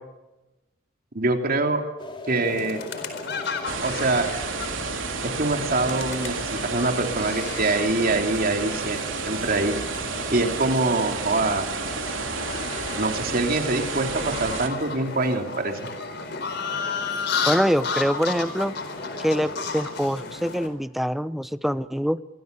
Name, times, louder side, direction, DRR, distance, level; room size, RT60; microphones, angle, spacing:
voice 1, 1.1-1.8 2.3-2.8 3.8-4.3 5.2-9.8 10.3-11.7 13.0-15.8, right 2 dB, 50° right, 4 dB, 3.1 m, -24 dB
sound 1, 2.0-19.7, left 2 dB, 25° left, 4.1 m, -42 dB
sound 2, 2.3-20.7, left 4 dB, 60° left, 4.4 m, -34 dB
sound 3, 3.7-14.7, right 5 dB, 75° right, 3.5 m, -31 dB
voice 2, 17.5-18.7 19.2-22.2, equal, ahead, 14 dB, 0.8 m, -24 dB
27.0 x 24.0 x 6.9 m, 1.0 s
head